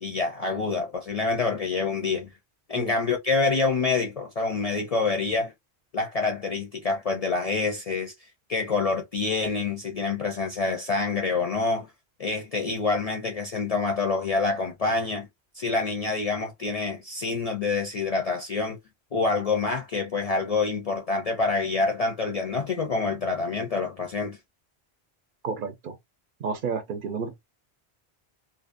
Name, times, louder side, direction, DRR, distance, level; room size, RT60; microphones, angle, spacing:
voice 1, 0.0-2.3 2.7-5.5 5.9-8.1 8.5-11.9 12.2-15.3 15.5-18.8 19.1-24.4, left 4 dB, 50° left, 0.4 m, -27 dB
voice 2, 25.4-26.0 26.4-27.3, right 5 dB, 60° right, 0.6 m, -31 dB
2.6 x 2.0 x 2.4 m
omnidirectional pair, 1.1 m